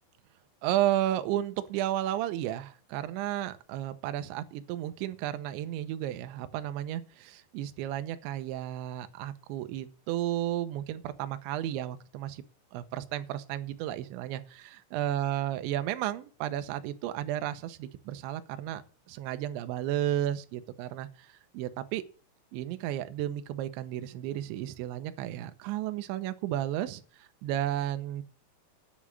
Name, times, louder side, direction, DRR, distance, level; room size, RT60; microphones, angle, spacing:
voice 1, 0.6-12.4 12.7-18.8 19.1-21.3 21.5-22.0 22.5-28.2, right 12 dB, 80° right, 10 dB, 2.9 m, -33 dB
10.5 x 6.2 x 8.5 m, 0.39 s
omnidirectional pair, 5.7 m